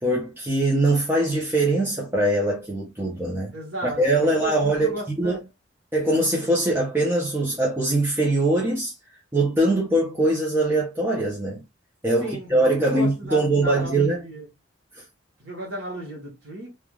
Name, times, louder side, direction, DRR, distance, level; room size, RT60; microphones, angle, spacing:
voice 1, 0.0-3.5 3.8-5.4 5.9-8.9 9.3-11.6 12.0-14.2 14.9-15.0, right 2 dB, 10° right, 0.7 m, -22 dB
voice 2, 3.5-5.4 12.2-14.5 15.4-16.8, right 2 dB, 85° right, 1.1 m, -34 dB
3.2 x 2.4 x 2.3 m
head